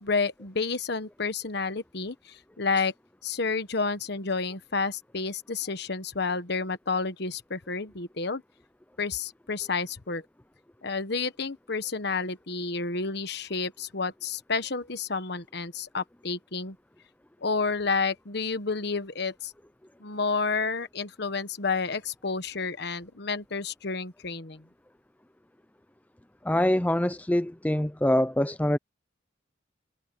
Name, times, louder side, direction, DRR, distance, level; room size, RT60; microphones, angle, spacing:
voice 1, 0.0-2.9 3.2-8.4 9.0-10.2 10.8-16.7 17.4-19.5 20.0-24.6, left 4 dB, 55° left, 1.3 m, -30 dB
voice 2, 26.4-28.8, left 1 dB, 10° left, 0.5 m, -24 dB
head